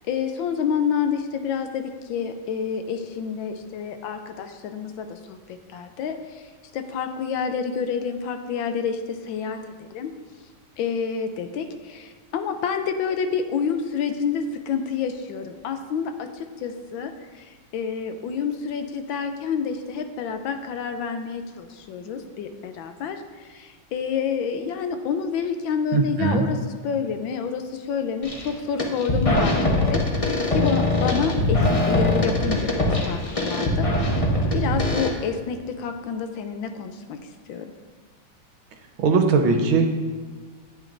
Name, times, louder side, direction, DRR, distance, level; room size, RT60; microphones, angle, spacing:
voice 1, 0.1-10.1 10.8-26.6 26.8-30.0 30.5-33.9 34.5-37.7, left 6 dB, 80° left, 7 dB, 1.3 m, -28 dB
voice 2, 25.9-26.4 39.0-39.9, right 4 dB, 75° right, 4 dB, 1.6 m, -20 dB
sound 1, 28.2-28.5 28.8-35.1, left 1 dB, 50° left, 0.4 m, -22 dB
10.5 x 8.3 x 2.6 m, 1.5 s
omnidirectional pair, 2.3 m